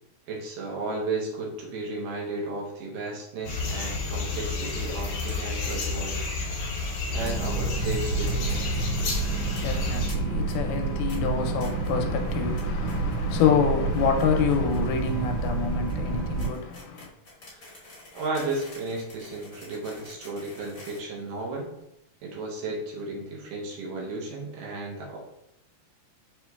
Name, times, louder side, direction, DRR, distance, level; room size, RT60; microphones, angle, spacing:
voice 1, 0.3-6.2 7.1-8.7 17.5-21.7 22.2-25.2, right 2 dB, 80° right, 2.4 m, -34 dB
sound 1, 3.4-10.1, left 3 dB, 70° left, 1.5 m, -31 dB
sound 2, 5.3-5.5 5.8-5.9 6.1-6.2 6.4-6.5 7.3-7.4 7.9-8.5 8.8-9.0 9.6-10.1 10.5-10.8 11.1-11.2 11.6-11.9 12.3-12.6 12.9-13.5 13.8-21.8, left 2 dB, 55° left, 1.0 m, -47 dB
Boat Water vehicle, 7.1-16.5, right 4 dB, 65° right, 2.5 m, -29 dB
voice 2, 9.3-17.1, left 6 dB, 90° left, 2.2 m, -27 dB
6.0 x 2.9 x 2.3 m
omnidirectional pair, 3.8 m